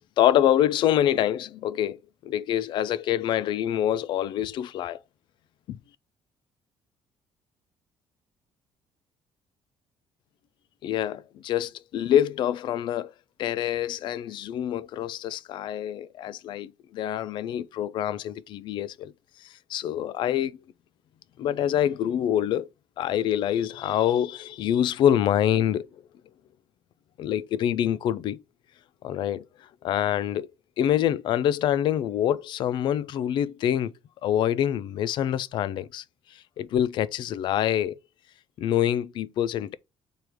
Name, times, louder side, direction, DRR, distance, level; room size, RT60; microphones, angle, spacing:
voice 1, 0.2-2.0 2.2-5.0 5.7-5.8 10.8-13.1 13.4-19.1 19.7-20.5 21.4-22.7 23.0-25.9 27.2-28.4 29.0-29.4 29.8-30.5 30.8-33.9 34.2-36.0 36.6-37.9 38.6-39.8, left 11 dB, 55° left, 0.3 m, -25 dB
4.5 x 2.4 x 4.8 m
cardioid pair, 160°, 10 cm